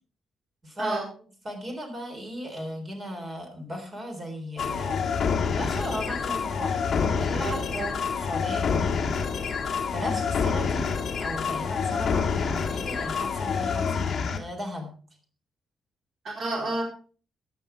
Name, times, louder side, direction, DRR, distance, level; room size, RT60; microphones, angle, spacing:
voice 1, 0.6-1.0 1.4-5.0 5.5-7.8 8.2-9.3 9.9-10.9 11.2-14.1 14.3-14.9, equal, 25° right, 4 dB, 3.6 m, -36 dB
sound 1, 4.6-14.4, left 6 dB, 40° left, 1.8 m, -27 dB
voice 2, 7.4-7.9 10.0-10.2 16.2-16.8, right 2 dB, 40° right, -1 dB, 3.9 m, -31 dB
14.5 x 9.0 x 4.6 m, 0.41 s
cardioid pair, 175°, 0 cm